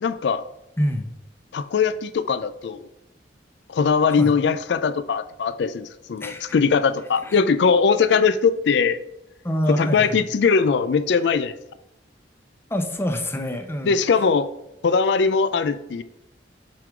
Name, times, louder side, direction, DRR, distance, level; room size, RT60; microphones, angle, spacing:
voice 1, 0.0-0.5 1.5-2.9 3.7-9.0 9.7-11.6 13.8-14.5 14.8-16.0, left 5 dB, 70° left, 13 dB, 0.4 m, -20 dB
voice 2, 0.8-1.1 4.2-4.3 6.2-6.5 7.2-7.4 8.1-8.2 9.4-10.2 12.7-14.2, equal, 15° left, 6 dB, 0.7 m, -26 dB
7.6 x 3.8 x 4.9 m, 0.88 s
head